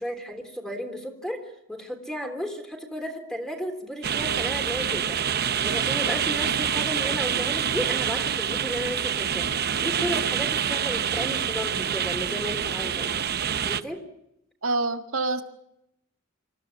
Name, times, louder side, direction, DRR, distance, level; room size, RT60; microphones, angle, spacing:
voice 1, 0.0-9.5 9.8-13.2 13.6-14.0, equal, 5° left, 5 dB, 3.4 m, -33 dB
sound 1, 4.0-13.8, right 8 dB, 50° right, 0.8 m, -26 dB
voice 2, 14.6-15.4, right 3 dB, 90° right, 6 dB, 1.8 m, -26 dB
26.5 x 16.0 x 8.5 m, 0.79 s
head